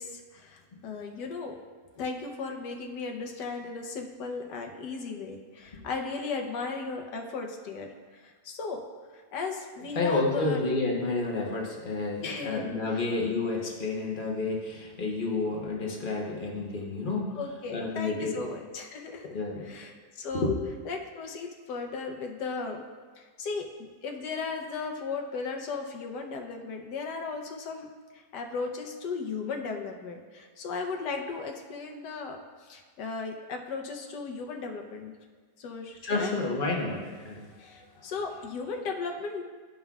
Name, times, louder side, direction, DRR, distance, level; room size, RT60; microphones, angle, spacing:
voice 1, 0.0-1.5 2.0-8.8 9.1-10.6 12.2-13.1 17.4-19.4 19.6-20.5 20.8-22.8 23.2-27.9 28.1-35.1 35.6-36.3 37.6-39.4, left 4 dB, 80° left, 3 dB, 1.4 m, -36 dB
voice 2, 9.9-17.4 17.7-18.4 19.3-19.7 20.3-20.5 36.0-37.5 37.9-38.1, left 3 dB, 35° left, -1 dB, 0.9 m, -30 dB
12.0 x 5.5 x 2.3 m, 1.5 s
omnidirectional pair, 1.8 m